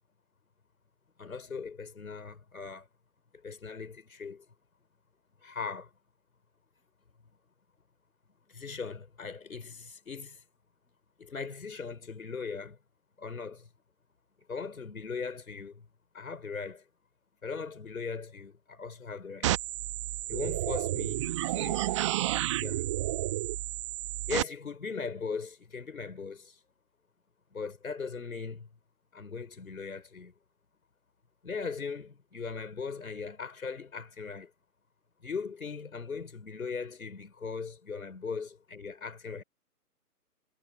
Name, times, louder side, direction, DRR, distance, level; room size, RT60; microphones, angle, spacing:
voice 1, 1.2-2.9 3.4-4.4 5.4-5.9 8.5-10.4 11.2-12.8 13.2-13.7 14.5-15.9 16.1-16.8 17.4-19.6 20.3-21.3 21.5-21.9 22.6-22.8 24.3-26.6 27.5-28.7 29.1-30.3 31.4-34.5 35.2-39.4, left 5 dB, 60° left, 6.0 m, -39 dB
sound 1, 19.4-24.4, right 15 dB, 20° right, 1.4 m, -31 dB
figure-of-eight pair, 140°, 47 cm